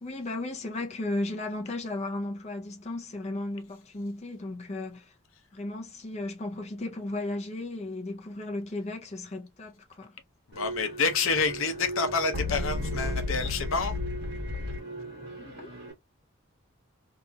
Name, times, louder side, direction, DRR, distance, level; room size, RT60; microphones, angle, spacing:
voice 1, 0.0-5.1 5.5-10.2 15.4-15.7, left 2 dB, 30° left, 0.6 m, -35 dB
voice 2, 10.5-13.9, left 4 dB, 75° left, 0.7 m, -28 dB
sound 1, 10.5-15.9, left 1 dB, 50° right, 1.2 m, -34 dB
2.8 x 2.5 x 2.3 m
head